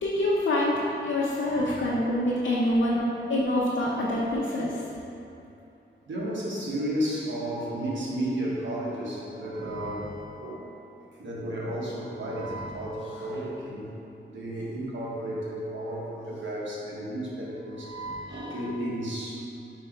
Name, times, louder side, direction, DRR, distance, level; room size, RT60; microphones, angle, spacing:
voice 1, 0.0-4.8, left 1 dB, 75° left, -6 dB, 0.8 m, -26 dB
voice 2, 1.4-2.0 2.6-2.8 6.1-10.6 11.2-13.9 14.3-19.4, right 1 dB, 80° right, -5 dB, 1.3 m, -33 dB
5.0 x 4.6 x 4.4 m, 2.8 s
wide cardioid pair, 175°, 20 cm